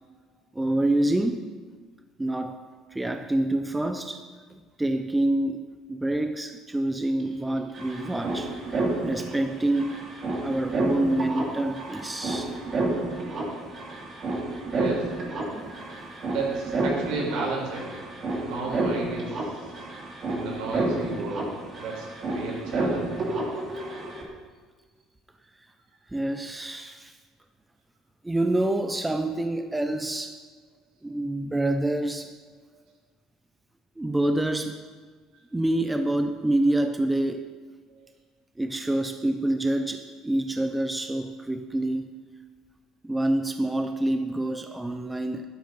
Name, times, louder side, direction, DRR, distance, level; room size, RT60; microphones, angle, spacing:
voice 1, 0.5-1.4 2.2-2.6 2.9-4.3 4.5-10.0 10.4-12.5 15.5-15.7 26.1-27.1 28.2-30.4 31.0-32.4 34.0-34.8 35.5-37.5 38.6-42.1 43.0-45.5, right 1 dB, 5° right, 7 dB, 0.6 m, -27 dB
sound 1, 7.2-7.3 7.5-24.2, right 2 dB, 30° right, 2.6 m, -30 dB
voice 2, 14.7-15.1 16.3-18.0 18.5-19.4 20.3-21.5 21.8-23.4, right 3 dB, 70° right, -1 dB, 5.0 m, -33 dB
12.0 x 11.5 x 5.4 m, 1.5 s
cardioid pair, 150°, 0 cm